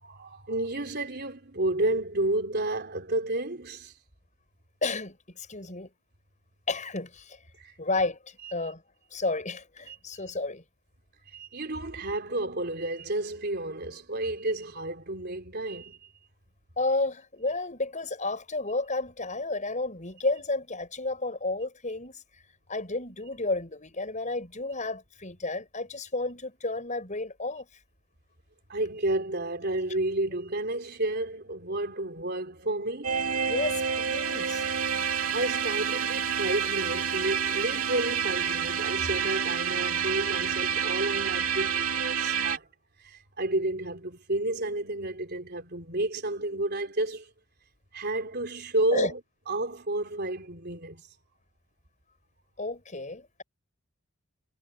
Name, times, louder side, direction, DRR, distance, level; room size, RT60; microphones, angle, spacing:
voice 1, 0.0-3.9 7.6-7.7 9.9-10.0 11.3-16.0 28.7-33.2 35.3-42.7 43.0-47.3 47.9-49.2 49.5-51.0, right 2 dB, 50° right, 3.9 m, -31 dB
voice 2, 4.8-5.9 6.7-7.4 7.8-8.8 9.1-10.6 16.8-22.2 22.7-27.7 33.4-34.6 48.9-49.1 52.6-53.4, left 2 dB, 35° left, 7.1 m, -32 dB
sound 1, 33.0-42.6, right 7 dB, 75° right, 2.9 m, -28 dB
head